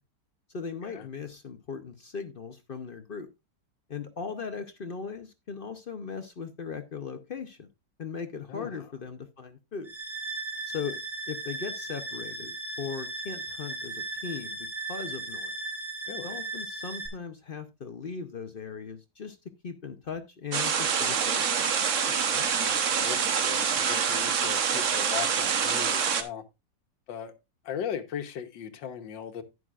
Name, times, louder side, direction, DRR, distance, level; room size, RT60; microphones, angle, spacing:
voice 1, 0.5-3.3 3.9-7.7 8.0-9.9 10.7-11.0 11.3-15.5 16.2-19.4 19.6-21.5, left 5 dB, 60° left, 0.6 m, -38 dB
voice 2, 8.5-8.9 16.1-16.4 22.0-26.4 27.1-27.3 27.7-29.4, left 8 dB, 90° left, 1.7 m, -38 dB
sound 1, 9.8-17.1, right 2 dB, 5° right, 2.9 m, -37 dB
sound 2, 20.5-26.2, right 7 dB, 50° right, 1.1 m, -26 dB
11.0 x 9.6 x 2.4 m
omnidirectional pair, 2.0 m